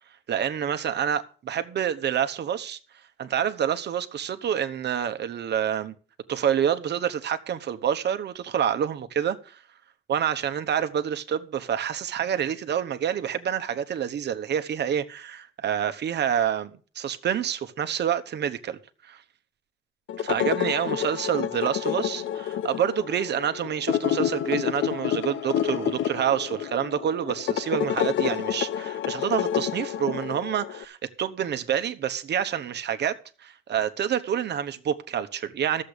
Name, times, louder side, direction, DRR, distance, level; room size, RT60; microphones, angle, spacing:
voice 1, 0.3-2.8 3.2-5.9 6.3-9.6 10.1-19.2 20.2-33.2 33.4-35.8, right 9 dB, 60° right, 1.0 m, -27 dB
sound 1, 20.1-30.8, left 10 dB, 75° left, 0.8 m, -29 dB
12.0 x 7.6 x 6.6 m
cardioid pair, 90°, 20 cm